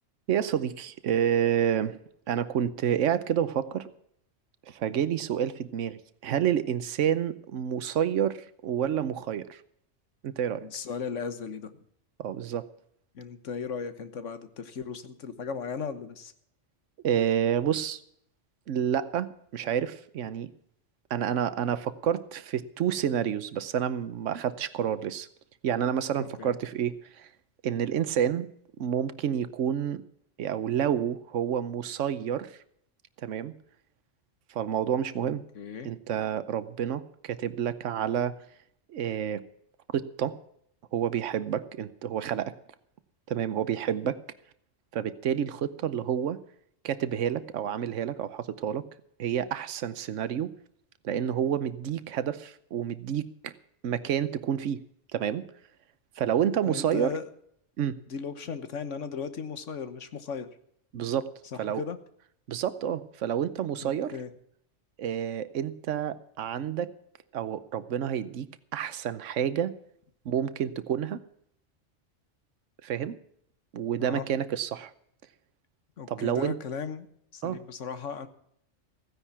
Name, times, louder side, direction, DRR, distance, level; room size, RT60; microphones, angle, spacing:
voice 1, 0.3-2.0 2.3-3.9 4.7-8.4 8.6-9.6 10.2-10.7 12.2-12.7 17.0-18.0 18.7-20.5 21.1-25.3 25.6-27.3 27.6-28.5 28.8-30.0 30.4-32.6 33.2-33.5 34.5-35.4 35.8-38.3 38.9-39.4 39.9-40.4 40.9-42.5 43.3-44.2 44.9-46.4 46.8-48.8 49.2-50.5 51.0-53.5 53.8-54.8 55.1-55.4 56.2-57.1 57.8-58.0 60.9-61.3 61.6-61.8 62.5-64.1 65.0-66.9 67.3-69.7 70.2-71.2 72.8-73.2 73.7-74.9 76.1-76.5 77.4-77.6, right 9 dB, 85° right, 13 dB, 1.1 m, -29 dB
voice 2, 10.6-11.8 13.1-16.3 26.2-26.6 35.5-35.9 56.6-57.3 58.1-60.5 61.5-62.0 63.8-64.3 74.0-74.3 76.0-77.1 77.3-78.3, left 6 dB, 80° left, 11 dB, 1.5 m, -36 dB
15.5 x 10.0 x 6.0 m, 0.69 s
omnidirectional pair, 1.3 m